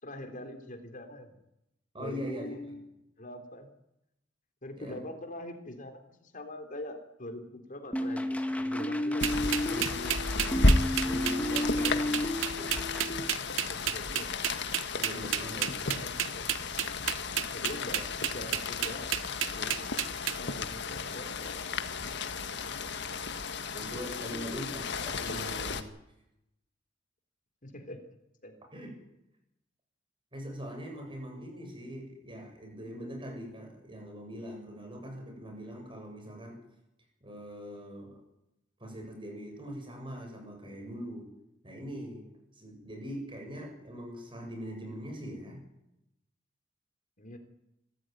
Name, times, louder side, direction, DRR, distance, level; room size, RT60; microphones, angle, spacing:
voice 1, 0.0-1.3 2.0-2.9 3.2-3.7 4.6-10.2 11.7-12.1 13.7-14.4 15.2-16.6 17.5-19.2 19.5-19.9 20.3-21.6 24.2-24.7 27.6-28.1 28.4-28.6 47.2-47.4, left 1 dB, 45° left, 6 dB, 3.8 m, -44 dB
voice 2, 1.9-2.7 4.8-5.0 11.0-12.2 12.6-12.8 14.9-15.9 23.7-25.8 28.7-28.9 30.3-36.6 37.2-38.2 38.8-41.3 41.6-45.6, equal, 25° right, 3 dB, 7.5 m, -42 dB
sound 1, 7.9-13.1, left 1 dB, 5° left, 1.6 m, -32 dB
Rain, 9.2-25.8, left 3 dB, 65° left, 1.7 m, -33 dB
sound 2, 9.2-20.4, right 12 dB, 90° right, 0.8 m, -31 dB
25.5 x 13.5 x 9.5 m, 0.85 s
head